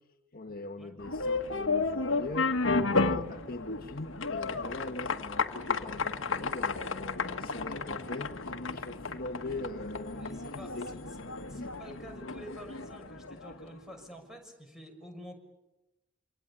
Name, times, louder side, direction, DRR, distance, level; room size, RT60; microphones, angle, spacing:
voice 1, 0.3-11.2 11.5-11.7, left 2 dB, 50° left, 5 dB, 1.7 m, -42 dB
sound 1, 1.0-13.7, left 3 dB, 75° left, 1.7 m, -33 dB
voice 2, 10.1-11.0 11.5-15.4, equal, ahead, 4 dB, 6.3 m, -48 dB
27.0 x 25.0 x 8.7 m, 0.95 s
head